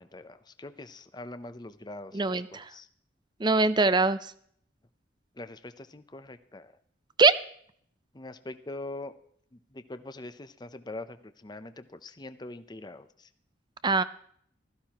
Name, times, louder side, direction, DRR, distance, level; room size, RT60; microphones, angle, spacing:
voice 1, 0.0-2.1 2.7-2.9 5.4-6.7 8.1-9.1 9.7-13.1, left 2 dB, 20° left, 11 dB, 0.7 m, -42 dB
voice 2, 2.1-2.7 3.4-4.3 7.2-7.3 13.8-14.0, right 3 dB, 25° right, 14 dB, 0.5 m, -22 dB
16.0 x 14.0 x 3.0 m, 0.62 s
head